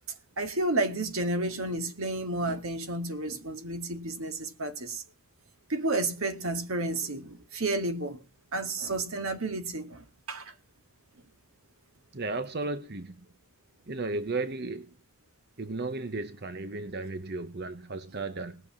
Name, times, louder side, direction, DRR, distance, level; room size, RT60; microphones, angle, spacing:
voice 1, 0.4-5.0 5.7-8.2 8.5-10.5, right 2 dB, 75° right, 2.1 m, -31 dB
voice 2, 12.1-13.2 13.9-14.9 15.6-18.6, right 3 dB, 45° right, 0.9 m, -34 dB
19.0 x 7.0 x 7.3 m
head